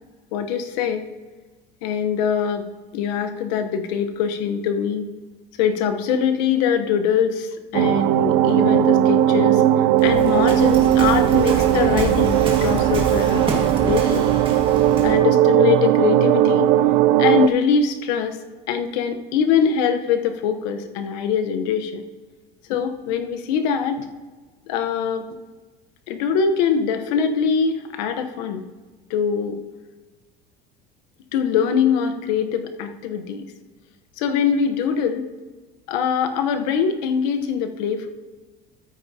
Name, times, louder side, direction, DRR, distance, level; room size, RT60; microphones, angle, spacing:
voice 1, 0.3-1.0 1.8-2.7 2.9-5.1 5.6-9.6 10.0-13.5 13.8-14.3 15.0-16.7 17.2-18.4 18.7-22.0 22.7-24.0 24.7-25.2 26.1-28.6 29.1-29.6 31.3-33.5 34.2-35.3 35.9-38.1, left 7 dB, 90° left, 7 dB, 0.9 m, -22 dB
sound 1, 7.7-17.5, right 12 dB, 75° right, 0.4 m, -18 dB
Waves surf, 10.0-15.2, right 2 dB, 25° right, 1.8 m, -28 dB
13.5 x 8.7 x 2.7 m, 1.3 s
cardioid pair, 140°, 21 cm